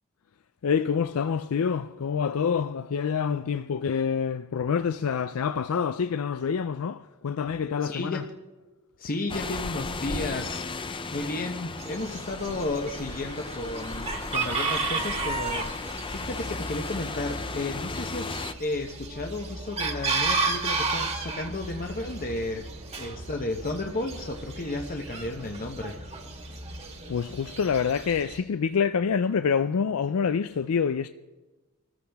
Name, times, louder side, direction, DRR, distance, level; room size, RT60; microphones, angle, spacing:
voice 1, 0.6-8.2 27.1-31.1, left 6 dB, 70° left, 0.4 m, -27 dB
voice 2, 7.8-8.3 9.0-22.7 23.0-26.0, left 2 dB, 40° left, 0.9 m, -33 dB
sound 1, 9.3-18.5, left 3 dB, 25° left, 0.6 m, -35 dB
Chicken rooster, 11.8-28.4, right 3 dB, 30° right, 1.7 m, -33 dB
25.5 x 14.0 x 3.5 m
head